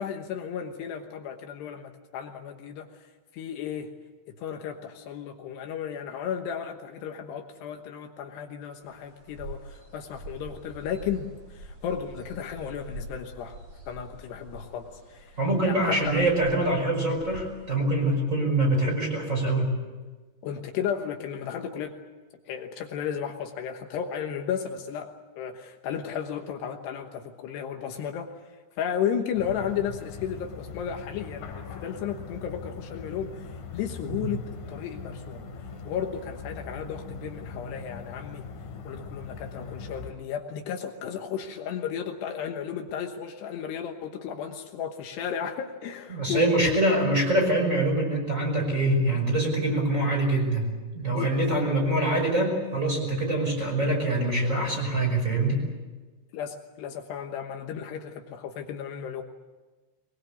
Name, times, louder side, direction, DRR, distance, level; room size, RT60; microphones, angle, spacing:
voice 1, 0.0-3.1 3.3-3.9 4.4-13.6 13.9-15.4 15.7-16.2 20.4-22.0 22.5-25.1 25.4-28.3 28.8-31.5 31.8-34.4 34.7-35.4 35.8-38.4 38.8-47.0 51.1-51.6 56.3-59.2, left 8 dB, 75° left, 4 dB, 3.2 m, -34 dB
sound 1, 8.8-17.8, right 1 dB, 35° right, 7.1 m, -45 dB
voice 2, 15.4-19.7 46.1-50.7 50.9-55.7, right 1 dB, 15° right, 0 dB, 5.6 m, -24 dB
sound 2, 29.3-40.1, left 4 dB, 55° left, 3.6 m, -41 dB
22.5 x 21.0 x 8.3 m, 1.3 s
omnidirectional pair, 5.1 m